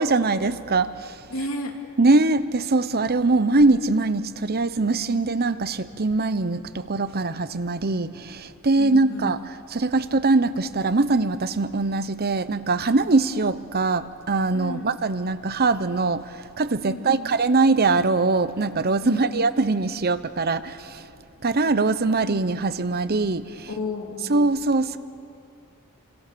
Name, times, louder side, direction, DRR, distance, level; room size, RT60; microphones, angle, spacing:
voice 1, 0.0-1.1 2.0-9.4 9.7-21.0 21.4-23.7 24.3-25.0, right 3 dB, 45° right, 13 dB, 0.9 m, -22 dB
voice 2, 1.3-1.7 8.8-9.3 14.5-14.9 16.8-17.3 19.0-19.5 23.7-24.3, left 1 dB, 65° left, 2 dB, 3.2 m, -33 dB
30.0 x 26.0 x 7.0 m, 2.4 s
head